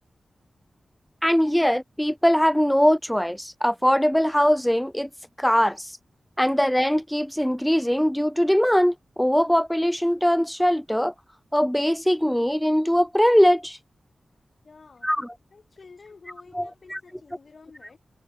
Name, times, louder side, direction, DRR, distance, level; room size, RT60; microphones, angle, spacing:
voice 1, 1.2-5.1 5.4-5.9 6.4-11.1 11.5-13.8 15.0-15.3 16.5-17.0, equal, 5° left, 0.4 m, -21 dB
voice 2, 14.6-15.1 15.5-18.0, left 4 dB, 55° left, 2.2 m, -50 dB
wide cardioid pair, 80°, 0 cm